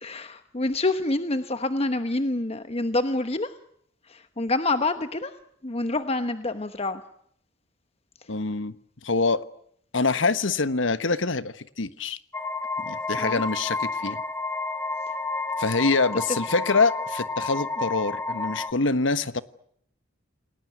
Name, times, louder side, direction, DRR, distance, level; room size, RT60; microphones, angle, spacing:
voice 1, 0.0-3.5 4.1-5.3 5.6-7.0 13.2-13.4, left 2 dB, 30° left, 10 dB, 1.1 m, -27 dB
voice 2, 8.3-8.7 9.0-9.4 9.9-12.2 12.8-14.2 15.6-19.4, left 3 dB, 70° left, 14 dB, 1.3 m, -25 dB
sound 1, 12.3-18.7, left 3 dB, 10° left, 1.7 m, -31 dB
28.5 x 19.5 x 9.4 m, 0.71 s
head